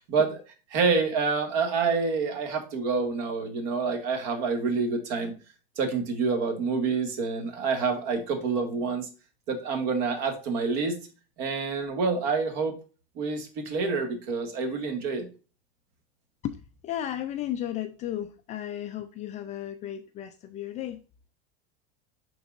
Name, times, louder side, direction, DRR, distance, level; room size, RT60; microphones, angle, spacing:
voice 1, 0.7-5.3 5.8-9.1 9.5-11.0 11.4-12.7 13.2-15.3, right 4 dB, 50° right, 4 dB, 2.1 m, -27 dB
voice 2, 16.8-21.0, left 11 dB, 25° left, 8 dB, 0.4 m, -34 dB
11.0 x 3.9 x 2.5 m, 0.34 s
supercardioid pair, 160°, 29 cm